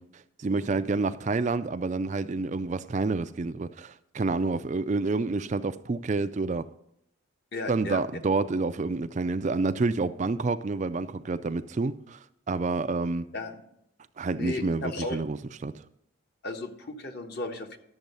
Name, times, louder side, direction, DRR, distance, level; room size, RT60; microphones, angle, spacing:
voice 1, 0.0-6.7 7.7-13.3 14.2-15.8, right 3 dB, 35° right, 0.4 m, -29 dB
voice 2, 7.5-8.0 13.3-13.5 14.3-15.2 16.4-17.8, left 2 dB, 50° left, 1.1 m, -35 dB
12.0 x 7.1 x 5.4 m
head